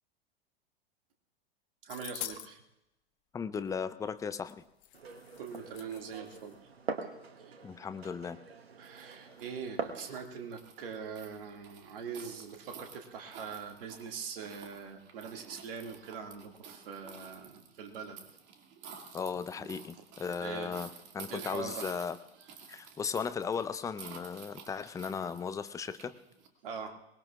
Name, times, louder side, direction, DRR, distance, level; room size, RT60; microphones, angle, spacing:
voice 1, 1.8-2.6 5.4-6.6 7.4-7.6 8.8-18.2 20.4-20.7 21.3-21.9 26.6-26.9, right 6 dB, 65° right, 3 dB, 2.3 m, -42 dB
sound 1, 1.9-2.5 4.5-4.6 4.8-6.5, left 15 dB, 40° left, 1.0 m, -45 dB
voice 2, 3.3-4.6 7.6-8.4 19.1-22.2 22.7-26.1, left 6 dB, 10° left, 13 dB, 0.5 m, -36 dB
Glass, 4.9-10.1, right 5 dB, 80° right, 1.5 m, -43 dB
sound 2, 8.8-26.5, right 6 dB, 35° right, 2.3 m, -51 dB
23.5 x 20.0 x 2.5 m, 0.91 s
hypercardioid pair, 100°, 30 cm